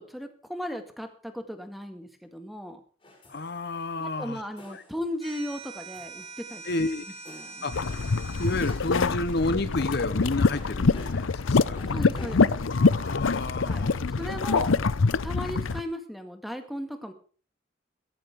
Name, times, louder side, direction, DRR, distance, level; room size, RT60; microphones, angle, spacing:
voice 1, 0.0-2.8 4.0-6.6 7.3-7.7 11.9-12.6 13.6-14.8 15.2-17.1, equal, ahead, 6 dB, 1.9 m, -36 dB
sound 1, 3.0-14.8, left 1 dB, 25° left, 5.6 m, -53 dB
voice 2, 3.3-4.4 4.7-4.8 6.6-7.0 7.6-7.7 8.4-11.8 12.7-14.0, left 2 dB, 55° left, 13 dB, 0.9 m, -31 dB
sound 2, 5.2-8.8, right 3 dB, 30° right, 6.0 m, -43 dB
sound 3, 7.7-15.8, left 4 dB, 85° left, 0.7 m, -25 dB
16.5 x 14.5 x 3.6 m, 0.40 s
head